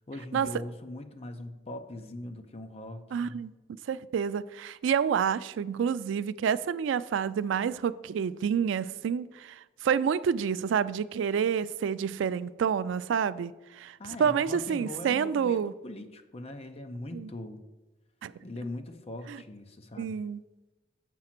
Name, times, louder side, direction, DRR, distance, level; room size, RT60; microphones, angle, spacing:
voice 1, 0.0-3.4 14.0-17.6 18.4-20.2, left 1 dB, 35° left, 7 dB, 0.7 m, -41 dB
voice 2, 3.1-3.5 3.9-15.7 17.1-17.3 18.2-18.3 19.3-19.4 20.0-20.4, right 7 dB, 85° right, 16 dB, 0.3 m, -28 dB
7.6 x 4.9 x 5.9 m, 1.1 s
head